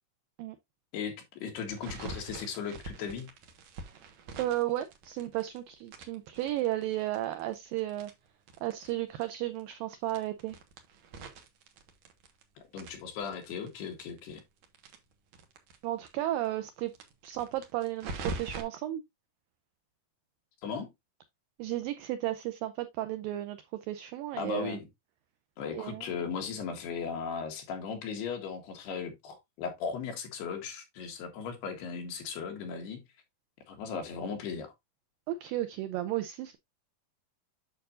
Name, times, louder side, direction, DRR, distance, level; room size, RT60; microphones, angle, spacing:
voice 1, 0.9-3.3 12.7-14.4 20.6-20.9 24.4-24.9 25.6-33.0 33.7-34.7, left 6 dB, 75° left, 3.6 m, -37 dB
sound 1, 1.7-5.6 5.9-8.9 9.2-9.3 9.5-9.6 10.0-12.4 12.7-15.8 16.0-16.1 16.4-16.5 16.9-18.6, right 3 dB, 60° right, 1.9 m, -43 dB
voice 2, 4.4-8.1 8.6-10.6 15.8-16.9 17.2-19.0 21.6-24.8 25.7-26.2 35.3-36.6, right 14 dB, 90° right, 1.9 m, -34 dB
8.9 x 6.6 x 2.5 m
omnidirectional pair, 4.7 m